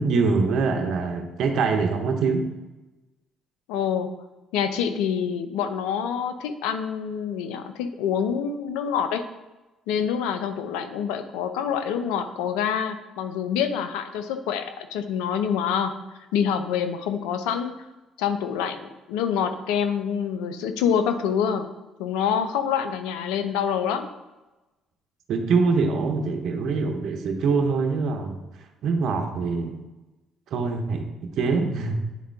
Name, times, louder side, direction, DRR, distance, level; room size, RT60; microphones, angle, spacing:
voice 1, 0.0-2.5 25.3-28.4 28.8-29.8 30.5-31.0 31.4-32.0, right 4 dB, 65° right, 4 dB, 0.9 m, -24 dB
voice 2, 3.7-4.1 4.5-9.2 9.9-15.9 16.3-17.7 18.2-21.7 22.0-24.1, left 8 dB, 85° left, 9 dB, 0.6 m, -26 dB
9.2 x 3.7 x 3.5 m, 1.1 s
supercardioid pair, 65°, 0 cm